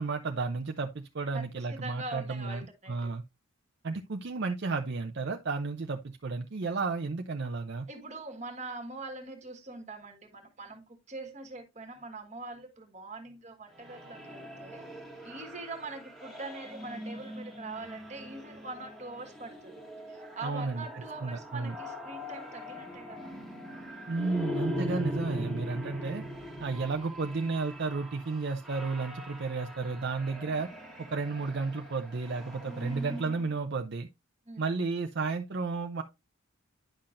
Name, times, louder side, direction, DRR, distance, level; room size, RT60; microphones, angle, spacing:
voice 1, 0.0-3.2 3.8-7.9 20.4-20.8 21.2-21.7 24.1-26.2 26.6-30.7 31.1-34.1 34.6-36.0, right 4 dB, 55° right, 0.6 m, -32 dB
voice 2, 1.7-2.9 7.9-14.9 15.2-19.8 20.1-23.3 34.5-34.7, right 2 dB, 35° right, 1.5 m, -43 dB
sound 1, 13.7-33.6, equal, ahead, 1.4 m, -41 dB
10.0 x 5.8 x 2.5 m
head